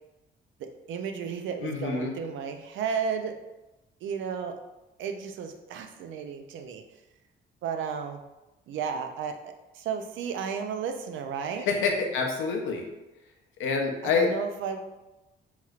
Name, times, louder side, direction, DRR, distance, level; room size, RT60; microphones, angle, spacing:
voice 1, 0.6-3.4 4.0-4.5 5.0-6.8 7.6-8.2 8.7-11.7 14.0-14.8, right 6 dB, 75° right, 5 dB, 0.4 m, -33 dB
voice 2, 1.6-2.1 11.6-12.8 13.6-14.3, left 4 dB, 85° left, 1 dB, 0.6 m, -27 dB
3.0 x 2.9 x 2.4 m, 0.99 s
cardioid pair, 90°, 20 cm